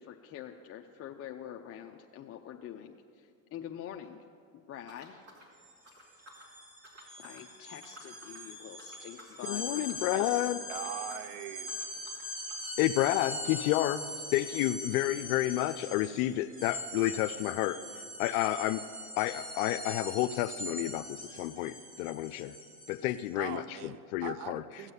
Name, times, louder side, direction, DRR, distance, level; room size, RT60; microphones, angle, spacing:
voice 1, 0.0-4.2 4.5-5.2 7.2-9.7, left 9 dB, 35° left, 3 dB, 0.6 m, -45 dB
sound 1, 4.8-6.5 6.8-7.5 7.8-8.5 8.8-9.4 9.7-10.4 10.7-11.3 11.6-17.3 17.6-17.7 17.9-18.0 18.6-18.7, equal, 35° right, 3.1 m, -56 dB
sound 2, 5.6-5.7 6.0-23.3, left 1 dB, 20° right, 2.7 m, -42 dB
voice 2, 9.5-10.6 12.8-17.8 18.2-18.8 19.2-22.6 22.9-24.6, left 15 dB, 80° left, 10 dB, 0.6 m, -30 dB
voice 3, 10.7-12.0 23.4-24.9, right 10 dB, 65° right, 13 dB, 0.8 m, -42 dB
16.0 x 7.4 x 8.1 m, 2.3 s
supercardioid pair, 115°, 42 cm